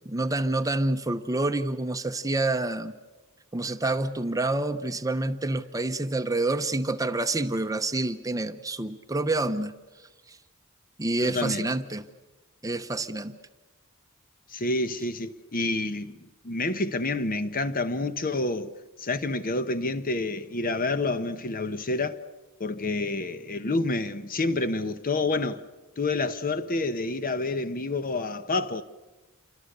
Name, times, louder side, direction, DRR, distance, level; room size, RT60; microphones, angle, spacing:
voice 1, 0.1-2.9 3.5-9.7 11.0-12.0 12.6-13.4, right 2 dB, 15° right, 0.8 m, -28 dB
voice 2, 11.2-11.6 14.5-18.7 19.0-22.2 22.6-25.6 26.0-28.8, left 2 dB, 40° left, 1.0 m, -28 dB
28.0 x 24.5 x 6.7 m
head